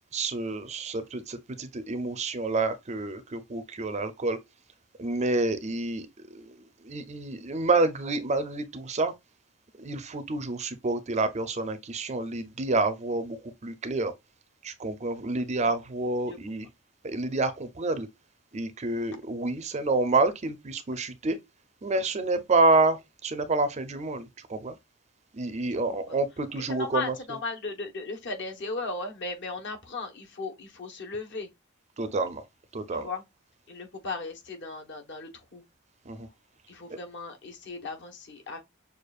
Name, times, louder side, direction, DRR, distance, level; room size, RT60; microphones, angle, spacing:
voice 1, 0.1-4.4 5.0-9.1 9.8-14.1 14.6-16.7 17.0-18.1 18.5-21.4 21.8-24.8 25.3-27.1 32.0-32.4 32.7-33.1 36.1-36.3 36.9-37.0, right 3 dB, 30° right, 0.5 m, -28 dB
voice 2, 26.6-31.5 32.9-33.2 33.7-35.6 36.7-38.6, left 3 dB, 55° left, 1.1 m, -36 dB
6.4 x 2.4 x 2.4 m
head